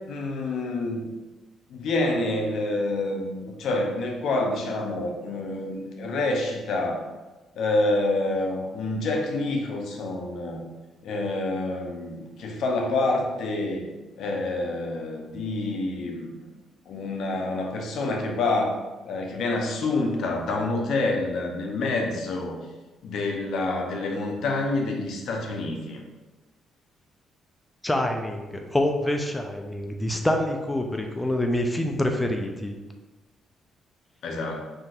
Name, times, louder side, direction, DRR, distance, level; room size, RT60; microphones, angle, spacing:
voice 1, 0.1-1.0 1.7-7.0 7.6-10.6 11.0-13.9 14.2-16.4 16.9-18.8 19.0-22.5 23.0-26.0 34.2-34.6, left 2 dB, 75° left, 1 dB, 0.6 m, -27 dB
voice 2, 27.8-32.7, left 1 dB, 10° left, 3 dB, 0.4 m, -26 dB
3.7 x 2.7 x 2.4 m, 1.2 s
cardioid pair, 90°, 0 cm